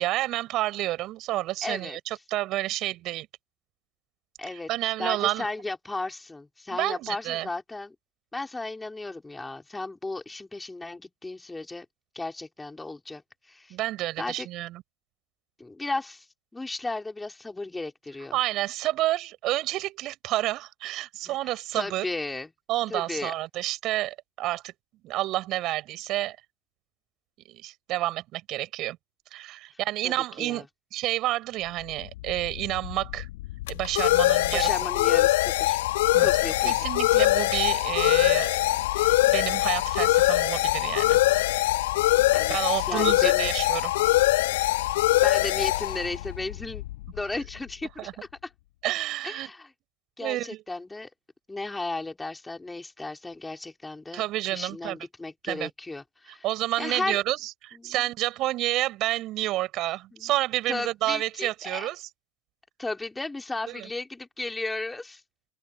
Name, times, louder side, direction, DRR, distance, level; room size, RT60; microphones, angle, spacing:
voice 1, 0.0-3.3 4.7-5.5 6.7-7.5 13.7-14.8 18.3-22.0 22.7-24.7 25.0-26.4 27.4-29.0 29.3-30.7 30.9-33.3 33.7-34.7 36.1-36.3 36.6-41.2 42.2-43.9 48.0-48.1 48.8-49.5 50.2-50.6 54.1-55.0 55.5-55.7 56.4-62.1 63.7-63.9, right 16 dB, 35° right, 5.0 m, -29 dB
voice 2, 1.6-2.0 4.4-4.7 5.0-7.9 8.3-11.9 12.1-13.8 14.2-14.5 15.6-16.3 16.5-18.4 21.2-22.5 22.9-23.3 30.0-30.1 30.4-30.6 34.5-35.8 36.2-36.7 42.3-43.5 44.9-46.8 47.1-48.5 49.2-49.7 50.2-51.1 51.5-54.2 54.5-56.4 56.8-57.2 57.7-57.9 60.1-60.3 60.7-61.9 62.8-65.2, left 2 dB, 10° left, 4.4 m, -35 dB
sound 1, 32.0-47.5, left 17 dB, 55° left, 3.0 m, -23 dB
open air
figure-of-eight pair, 90°, 0 cm